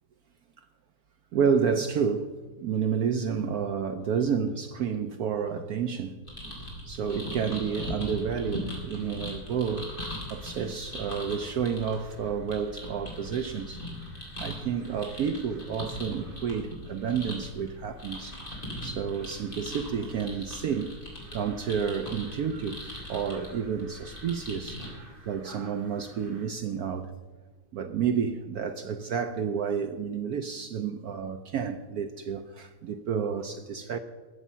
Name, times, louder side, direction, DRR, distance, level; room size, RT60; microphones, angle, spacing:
voice 1, 1.3-6.2 6.8-9.9 10.3-13.9 14.4-18.4 18.8-20.9 21.3-27.1 27.7-34.0, right 7 dB, 75° right, 0.8 m, -30 dB
sound 1, 6.3-24.9, left 1 dB, 25° left, 3.5 m, -40 dB
sound 2, 6.9-26.5, right 2 dB, 25° right, 2.4 m, -56 dB
20.0 x 7.2 x 5.6 m
omnidirectional pair, 2.2 m